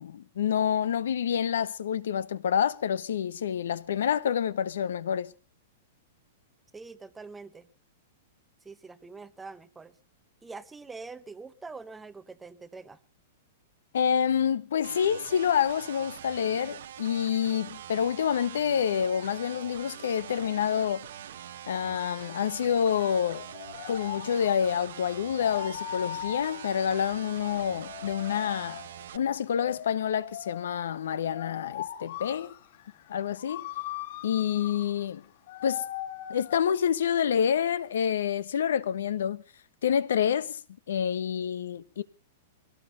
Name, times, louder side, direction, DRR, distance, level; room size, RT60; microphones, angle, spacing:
voice 1, 0.0-5.3 13.9-21.0 21.7-23.5 23.9-28.8 29.1-32.6 33.1-33.7 34.2-35.2 35.6-35.8 36.3-39.4 39.8-40.6 40.9-42.0, left 8 dB, 85° left, 1.1 m, -27 dB
voice 2, 6.7-7.7 8.6-9.9 10.4-13.0, right 4 dB, 5° right, 0.7 m, -44 dB
sound 1, 14.8-29.2, right 10 dB, 60° right, 0.9 m, -44 dB
sound 2, 19.9-38.0, left 12 dB, 50° left, 3.7 m, -42 dB
24.0 x 18.0 x 2.7 m
supercardioid pair, 180°, 0 cm